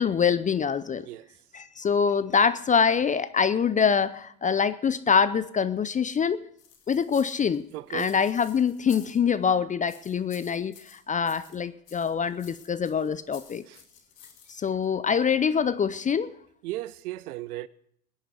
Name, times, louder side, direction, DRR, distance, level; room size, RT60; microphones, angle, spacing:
voice 1, 0.0-1.1 1.5-6.4 6.9-7.6 7.9-13.6 14.5-16.3, left 6 dB, 15° left, 0.5 m, -25 dB
voice 2, 1.0-1.3 7.7-8.1 13.7-13.8 16.6-17.7, right 16 dB, 65° right, 0.8 m, -36 dB
sound 1, 6.6-9.5 9.9-11.6 11.9-14.8, left 7 dB, 75° left, 2.4 m, -52 dB
20.5 x 9.9 x 4.6 m
hypercardioid pair, 75°, 47 cm